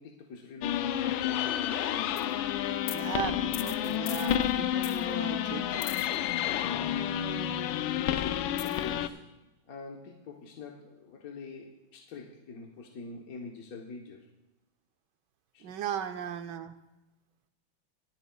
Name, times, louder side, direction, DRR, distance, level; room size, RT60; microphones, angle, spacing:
voice 1, 0.0-1.6 6.4-6.8 8.0-9.3 9.7-14.3 15.5-15.8, left 4 dB, 55° left, -1 dB, 1.3 m, -45 dB
sound 1, 0.6-9.1, left 11 dB, 85° left, 1.4 m, -30 dB
voice 2, 2.9-5.9 15.6-16.8, right 9 dB, 70° right, 9 dB, 1.2 m, -37 dB
25.0 x 8.8 x 2.3 m, 1.0 s
omnidirectional pair, 2.1 m